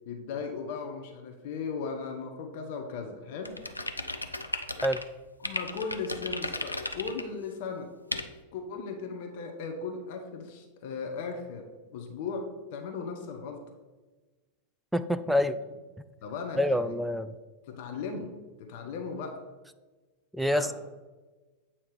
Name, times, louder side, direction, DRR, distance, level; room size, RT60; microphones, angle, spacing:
voice 1, 0.0-3.6 5.4-7.9 8.5-11.7 11.9-13.6 15.2-15.3 16.2-16.9 17.7-19.4 20.5-20.7, left 5 dB, 50° left, 3 dB, 0.8 m, -37 dB
sound 1, 3.5-5.0 5.4-7.2 8.1-8.3, left 2 dB, 85° left, 0.4 m, -35 dB
voice 2, 14.9-15.6 16.6-17.3 20.3-20.7, left 1 dB, 5° right, 11 dB, 0.3 m, -26 dB
8.4 x 2.8 x 5.0 m, 1.3 s
figure-of-eight pair, 90°, 0 cm